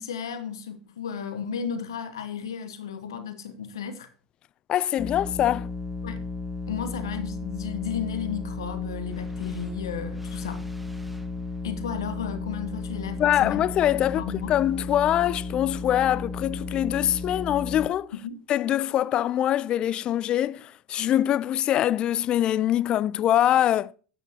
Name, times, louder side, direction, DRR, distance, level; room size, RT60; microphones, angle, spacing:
voice 1, 0.0-4.1 6.0-6.2 6.7-10.6 11.6-13.7 14.0-14.6 18.2-18.4, left 7 dB, 80° left, 1.1 m, -34 dB
voice 2, 4.7-5.7 13.2-18.1 18.5-23.9, left 11 dB, 40° left, 0.4 m, -24 dB
sound 1, 5.0-17.9, left 3 dB, ahead, 1.4 m, -34 dB
11.5 x 8.8 x 2.8 m
hypercardioid pair, 80°, 2 cm